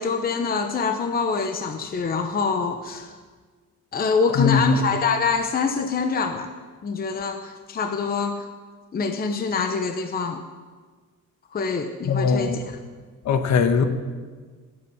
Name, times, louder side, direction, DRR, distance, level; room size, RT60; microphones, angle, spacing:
voice 1, 0.0-3.1 3.9-6.5 6.8-8.5 8.9-10.4 11.5-12.6, left 5 dB, 25° left, 6 dB, 0.9 m, -25 dB
voice 2, 4.3-4.8 12.0-12.6 13.2-13.9, left 5 dB, 55° left, 8 dB, 1.5 m, -20 dB
16.0 x 8.1 x 9.6 m, 1.5 s
cardioid pair, 150°, 33 cm